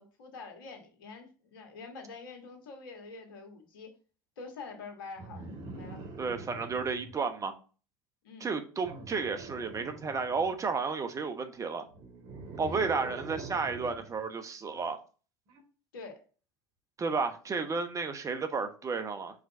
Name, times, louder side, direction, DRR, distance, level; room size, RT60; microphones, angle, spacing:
voice 1, 0.0-3.9 4.4-5.5 5.7-6.0 8.2-8.5 12.7-12.9 15.9-16.2, left 4 dB, 75° left, 1.6 m, -46 dB
sound 1, 5.2-7.1 8.8-10.6 11.9-14.1 15.5-15.6, right 3 dB, 60° right, 2.3 m, -44 dB
voice 2, 6.2-7.5 8.4-11.8 12.6-15.0 17.0-19.4, right 4 dB, 30° right, 1.0 m, -32 dB
5.0 x 3.9 x 5.7 m
hypercardioid pair, 75°, 12 cm